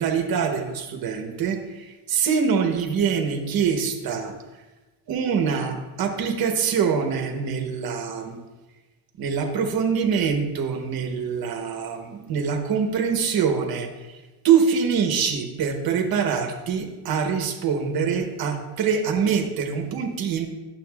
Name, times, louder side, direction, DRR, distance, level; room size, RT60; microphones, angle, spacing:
voice 1, 0.0-4.3 5.1-8.4 9.2-13.9 14.4-20.5, right 6 dB, 55° right, 5 dB, 1.0 m, -24 dB
9.2 x 7.1 x 2.3 m, 1.1 s
cardioid pair, 135°, 45 cm